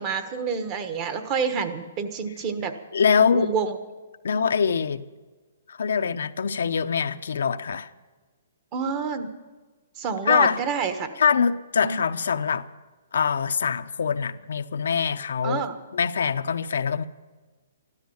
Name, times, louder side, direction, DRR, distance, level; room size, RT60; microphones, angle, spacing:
voice 1, 0.0-2.7 3.3-3.8 8.7-9.3 10.0-11.1 11.8-12.0 15.4-15.7, right 6 dB, 30° right, 1.3 m, -28 dB
voice 2, 2.9-3.5 4.2-5.0 5.7-7.9 10.3-10.6 11.2-12.7 13.1-15.6 15.9-17.0, left 6 dB, 80° left, 0.7 m, -23 dB
13.5 x 13.0 x 7.2 m
hypercardioid pair, 155°, 0 cm